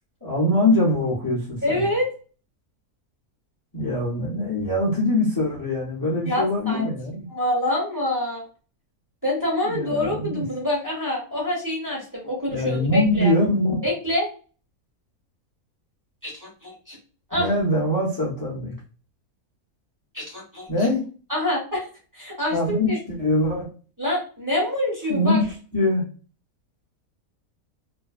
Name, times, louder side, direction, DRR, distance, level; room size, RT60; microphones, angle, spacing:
voice 1, 0.2-1.9 3.7-7.3 9.6-10.4 12.5-13.9 17.3-18.8 20.7-21.0 22.5-23.7 25.1-25.4 25.7-26.0, left 1 dB, 30° left, -5 dB, 0.4 m, -23 dB
voice 2, 1.6-2.1 6.2-6.8 7.3-8.4 9.2-13.3 13.8-14.3 16.2-17.0 17.3-17.5 20.1-20.7 21.3-21.8 22.1-23.0 24.0-25.4, left 1 dB, 15° right, -5 dB, 0.7 m, -26 dB
2.5 x 2.1 x 2.4 m, 0.37 s
omnidirectional pair, 1.6 m